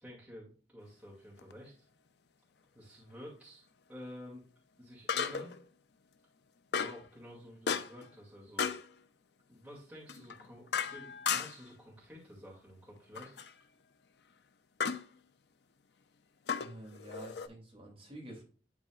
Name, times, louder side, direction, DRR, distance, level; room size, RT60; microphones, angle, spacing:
voice 1, 0.0-1.9 2.7-3.6 3.9-4.4 4.8-5.6 6.7-8.8 9.5-13.4, equal, 10° right, -4 dB, 2.3 m, -51 dB
sound 1, 1.4-1.5 5.1-5.6 6.7-7.1 7.7-8.1 8.6-8.9 10.1-11.7 13.1-13.5 14.8-15.1 16.5-17.5, left 6 dB, 65° left, 0.5 m, -35 dB
voice 2, 16.6-18.4, right 1 dB, 30° right, -2 dB, 2.4 m, -49 dB
11.0 x 4.1 x 2.4 m, 0.39 s
head